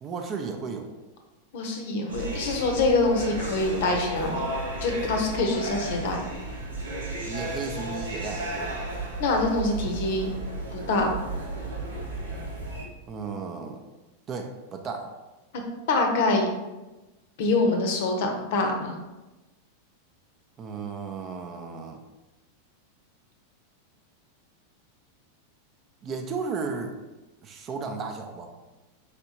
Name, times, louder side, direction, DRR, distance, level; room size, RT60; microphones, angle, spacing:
voice 1, 0.0-0.9 7.2-8.8 13.1-13.8 14.3-15.1 20.6-22.0 26.0-26.9 27.4-28.6, right 5 dB, 30° right, 4 dB, 0.5 m, -34 dB
voice 2, 1.5-4.4 4.8-6.2 9.2-10.3 10.7-11.1 15.9-16.5 17.4-18.9, left 2 dB, 50° left, 3 dB, 0.7 m, -25 dB
sound 1, 2.1-12.8, right 2 dB, 75° right, 0.9 m, -33 dB
4.6 x 3.3 x 2.8 m, 1.1 s
figure-of-eight pair, 90°, 0 cm